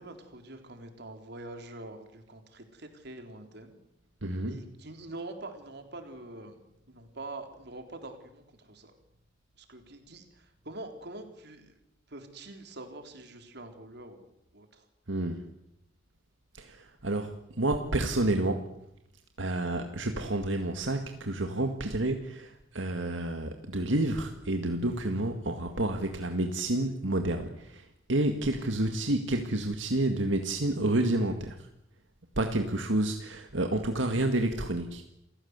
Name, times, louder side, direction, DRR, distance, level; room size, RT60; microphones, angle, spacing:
voice 1, 0.0-3.8 4.4-6.6 6.9-8.9 9.6-11.7 12.1-14.8 28.6-29.0 32.6-32.7, right 2 dB, 60° right, 6 dB, 3.8 m, -45 dB
voice 2, 4.2-4.6 15.1-15.4 16.5-18.7 19.4-31.7 32.4-35.1, right 1 dB, 90° right, 5 dB, 1.9 m, -29 dB
28.0 x 16.0 x 8.2 m, 0.82 s
head